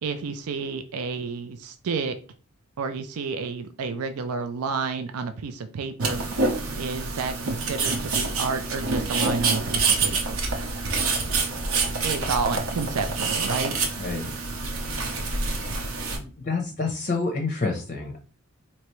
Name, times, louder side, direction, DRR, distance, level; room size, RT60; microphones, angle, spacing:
voice 1, 0.0-2.2 2.8-6.2 6.8-10.4 12.0-13.8, right 5 dB, 85° right, 8 dB, 0.4 m, -30 dB
sound 1, 6.0-16.2, right 3 dB, 70° right, 0.8 m, -27 dB
voice 2, 14.0-14.3 16.2-18.2, left 3 dB, 35° left, 2 dB, 0.5 m, -28 dB
4.4 x 2.9 x 3.0 m, 0.37 s
head